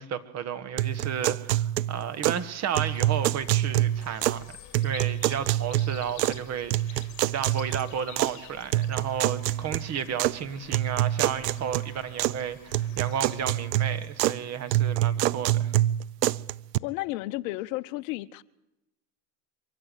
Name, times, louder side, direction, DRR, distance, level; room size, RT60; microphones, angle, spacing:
voice 1, 0.0-4.6 4.8-15.7, right 8 dB, 35° right, 1.5 m, -33 dB
sound 1, 0.8-2.5 2.7-4.5 4.7-6.4 6.7-8.3 8.7-10.4 10.7-12.4 12.7-14.4 14.7-16.8, right 14 dB, 85° right, 0.6 m, -26 dB
sound 2, 2.8-14.3, left 10 dB, 35° left, 3.2 m, -49 dB
voice 2, 16.8-18.4, left 18 dB, 55° left, 0.8 m, -32 dB
24.0 x 14.0 x 8.1 m
hypercardioid pair, 115°, 48 cm